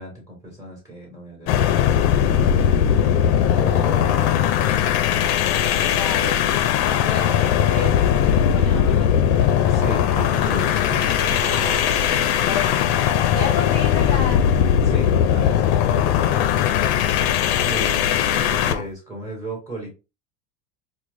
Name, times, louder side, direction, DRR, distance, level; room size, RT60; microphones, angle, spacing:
voice 1, 0.0-2.8 3.5-4.9 9.7-11.1 14.8-16.9 17.6-19.9, right 1 dB, 5° right, -2 dB, 2.1 m, -35 dB
sound 1, 1.5-18.8, left 9 dB, 60° left, 0.5 m, -19 dB
voice 2, 5.9-6.4 6.8-9.1 11.0-11.3 11.6-11.7 12.1-14.5 15.6-15.8 17.3-17.7, left 5 dB, 30° left, 1 dB, 0.8 m, -32 dB
sound 2, 9.2-14.4, right 2 dB, 30° right, 1.6 m, -38 dB
4.6 x 2.1 x 2.5 m, 0.30 s
supercardioid pair, 145°, 47 cm